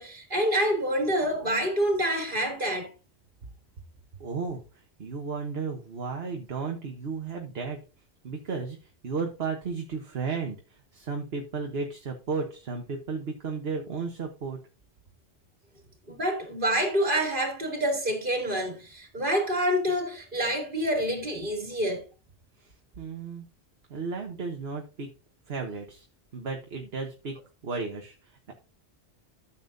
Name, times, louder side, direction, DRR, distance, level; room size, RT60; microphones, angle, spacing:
voice 1, 0.0-2.9 16.1-22.0, equal, 50° right, 3.2 m, -27 dB
voice 2, 4.2-7.8 8.2-8.8 9.0-14.6 22.6-23.5 23.9-25.1 25.5-26.0 26.3-27.4 27.6-28.5, right 4 dB, 65° right, 1.4 m, -34 dB
13.0 x 7.4 x 2.6 m
omnidirectional pair, 1.1 m